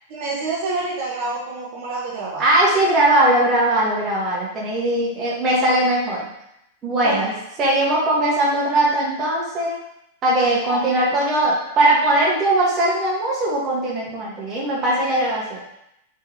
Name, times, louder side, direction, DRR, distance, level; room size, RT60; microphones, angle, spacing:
voice 1, 0.1-2.4 7.0-7.3 10.6-10.8, right 3 dB, 50° right, -6 dB, 1.1 m, -27 dB
voice 2, 2.4-6.3 6.8-7.3 7.6-9.8 10.2-15.6, right 1 dB, 25° right, -5 dB, 1.4 m, -20 dB
3.6 x 3.4 x 2.9 m, 0.79 s
hypercardioid pair, 130°, 0 cm